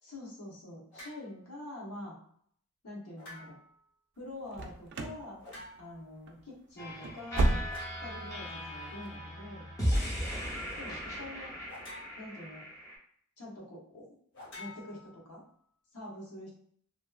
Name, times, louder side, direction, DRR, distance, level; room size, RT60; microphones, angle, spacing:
voice 1, 0.0-2.2 2.8-3.6 4.2-5.4 5.8-7.7 8.0-9.7 10.8-11.5 12.2-12.7 13.4-14.1 14.6-15.4 15.9-16.5, left 1 dB, 85° left, -4 dB, 1.0 m, -45 dB
sound 1, 0.9-1.3 3.2-3.8 5.4-6.1 7.7-8.1 9.9-10.2 11.7-12.4 14.3-15.5, left 2 dB, 55° left, 0.8 m, -49 dB
sound 2, 4.5-5.2 5.5-6.0 6.3-6.4 6.8-8.1 8.4-8.5 9.0-9.1, right 2 dB, 50° right, 0.3 m, -31 dB
sound 3, 6.8-13.0, equal, 15° left, 0.6 m, -37 dB
2.7 x 2.3 x 2.3 m, 0.63 s
head